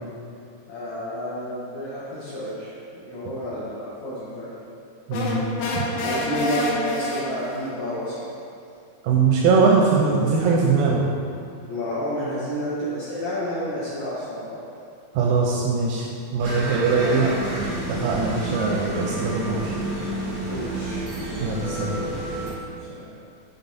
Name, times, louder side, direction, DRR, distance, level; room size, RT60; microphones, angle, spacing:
voice 1, 0.7-2.7 3.0-4.5 6.0-8.2 11.7-14.6 17.0-17.3 20.5-21.1 22.9-23.1, equal, 65° left, -10 dB, 1.8 m, -30 dB
sound 1, 5.1-7.7, left 1 dB, 85° left, 1.7 m, -27 dB
voice 2, 5.1-5.4 5.7-5.8 9.0-11.1 15.2-17.3 17.9-19.8 21.4-22.0, right 4 dB, 80° right, -2 dB, 2.0 m, -21 dB
sound 2, 16.4-22.5, right 1 dB, 55° right, 0.9 m, -30 dB
8.1 x 3.5 x 4.2 m, 2.5 s
omnidirectional pair, 4.4 m